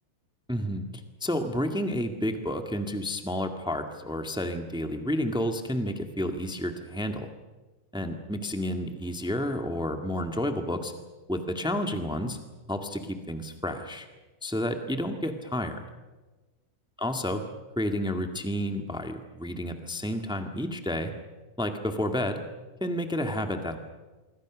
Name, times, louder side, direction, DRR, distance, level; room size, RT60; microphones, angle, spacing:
voice 1, 0.5-0.8 1.2-7.3 7.9-10.9 11.3-12.4 12.7-14.1 14.4-15.8 17.0-17.4 17.7-21.1 21.6-22.4 22.8-23.8, left 1 dB, 5° right, 6 dB, 0.5 m, -30 dB
26.0 x 24.0 x 6.2 m, 1.2 s
omnidirectional pair, 3.8 m